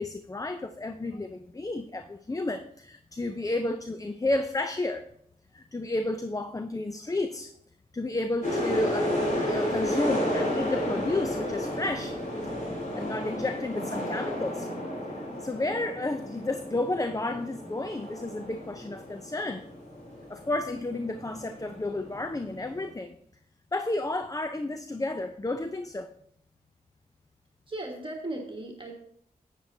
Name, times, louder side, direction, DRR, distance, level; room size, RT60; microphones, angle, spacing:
voice 1, 0.0-5.0 5.5-7.5 7.9-9.1 9.5-12.2 12.9-14.7 15.2-19.6 20.3-23.2 23.7-26.1, left 2 dB, 20° left, 9 dB, 0.5 m, -31 dB
sound 1, 8.4-22.9, left 1 dB, 50° left, 3.6 m, -32 dB
voice 2, 27.7-29.0, right 2 dB, 30° right, 0 dB, 1.7 m, -37 dB
11.0 x 9.0 x 2.7 m, 0.68 s
cardioid pair, 50°, 16 cm